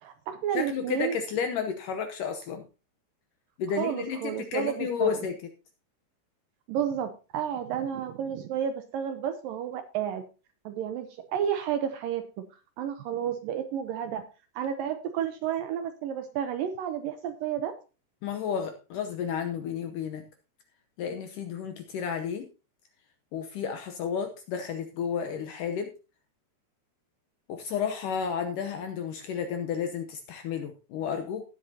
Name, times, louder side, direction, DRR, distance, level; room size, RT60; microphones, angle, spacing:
voice 1, 0.0-1.2 3.8-5.1 6.7-10.2 10.7-12.2 12.8-14.2 14.6-17.7, right 9 dB, 75° right, 8 dB, 2.1 m, -31 dB
voice 2, 0.5-2.6 3.6-5.4 18.2-20.2 21.0-22.5 23.3-25.9 27.5-31.4, left 7 dB, 75° left, 7 dB, 2.0 m, -32 dB
17.5 x 7.9 x 2.8 m, 0.32 s
omnidirectional pair, 4.7 m